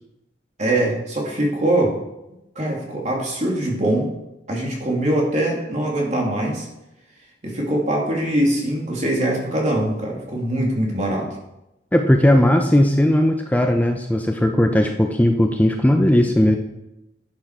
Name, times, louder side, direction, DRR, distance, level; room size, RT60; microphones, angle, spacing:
voice 1, 0.6-2.0 2.5-4.1 4.5-6.7 7.4-11.3, right 1 dB, 40° right, -2 dB, 2.9 m, -22 dB
voice 2, 11.9-16.6, left 1 dB, 10° left, 4 dB, 0.6 m, -17 dB
11.5 x 8.0 x 4.9 m, 0.92 s
head